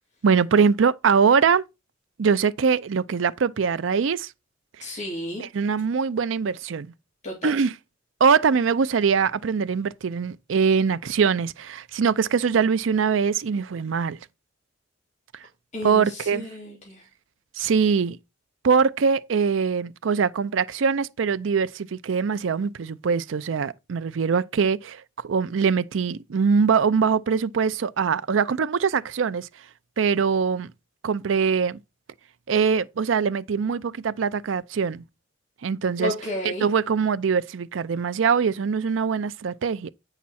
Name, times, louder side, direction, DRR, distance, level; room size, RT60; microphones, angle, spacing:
voice 1, 0.2-1.6 2.2-4.3 4.8-4.9 5.4-6.9 7.4-7.7 8.2-14.2 15.3-15.4 15.8-16.5 17.6-18.2 18.6-29.5 30.0-30.7 31.0-31.8 32.5-35.0 35.6-36.1 36.4-39.9, right 6 dB, 80° right, 0.5 m, -22 dB
voice 2, 4.8-5.4 7.2-7.5 15.7-17.0 36.0-36.7, left 1 dB, 40° left, 2.9 m, -32 dB
8.4 x 5.8 x 4.2 m
head